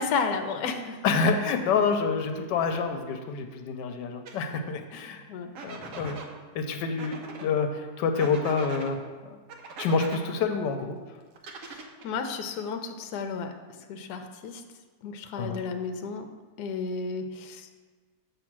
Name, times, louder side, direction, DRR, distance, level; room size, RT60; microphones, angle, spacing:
voice 1, 0.0-1.0 5.3-5.5 11.6-13.5 13.9-14.6 15.0-16.2 16.6-17.7, left 5 dB, 70° left, 6 dB, 1.1 m, -32 dB
voice 2, 1.0-5.2 5.6-6.2 6.5-9.4 9.8-11.0 15.4-15.6, left 5 dB, 85° left, 6 dB, 1.2 m, -27 dB
sound 1, 4.3-4.4 5.5-6.3 7.0-7.5 8.2-8.9 9.5-10.2 11.4-12.1, right 4 dB, 60° right, 1.0 m, -41 dB
7.1 x 3.3 x 6.0 m, 1.4 s
omnidirectional pair, 1.8 m